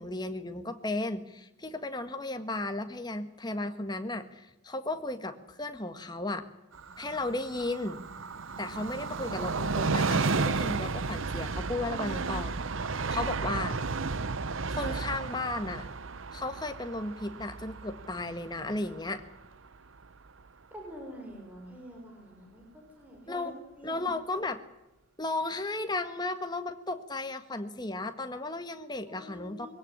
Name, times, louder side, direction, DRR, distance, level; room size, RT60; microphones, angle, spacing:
voice 1, 0.0-6.5 7.0-8.0 8.6-12.6 13.1-13.8 14.7-15.9 16.3-19.2 23.3-23.6 23.8-24.6 25.2-29.8, left 2 dB, 20° left, 7 dB, 1.6 m, -35 dB
Train, 6.7-20.1 20.4-20.5, right 4 dB, 65° right, 0.8 m, -33 dB
voice 2, 20.7-23.5 23.8-24.1 29.1-29.8, equal, 10° right, 0 dB, 5.6 m, -46 dB
22.0 x 17.0 x 9.9 m, 0.96 s
head